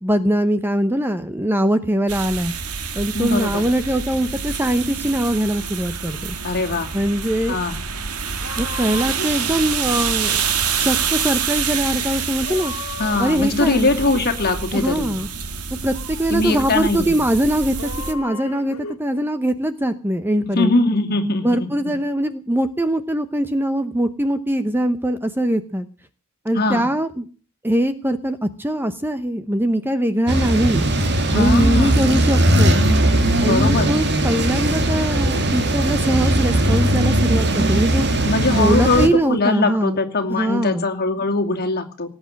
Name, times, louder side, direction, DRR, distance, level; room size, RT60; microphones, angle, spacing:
voice 1, 0.0-2.5 2.9-6.3 6.9-7.6 8.6-10.4 10.8-12.7 13.2-13.9 14.7-15.3 15.8-17.8 18.1-20.7 21.4-25.9 26.4-27.2 27.6-30.8 31.3-32.8 33.4-38.0 38.5-40.0 40.3-40.8, right 1 dB, 10° right, 11 dB, 0.8 m, -22 dB
sound 1, 2.1-18.1, right 6 dB, 85° right, 1.8 m, -27 dB
voice 2, 3.1-3.6 6.4-6.9 7.5-7.8 13.0-15.2 16.3-17.2 20.5-21.9 26.5-26.9 31.3-32.0 33.4-33.9 38.2-42.1, left 2 dB, 45° left, 4 dB, 2.6 m, -21 dB
sound 2, 7.9-10.0 12.3-14.3 14.6-14.9 17.8-19.0, left 4 dB, 65° left, 2.1 m, -36 dB
sound 3, 30.3-39.1, right 1 dB, 50° right, 2.1 m, -18 dB
18.5 x 8.9 x 7.6 m, 0.38 s
head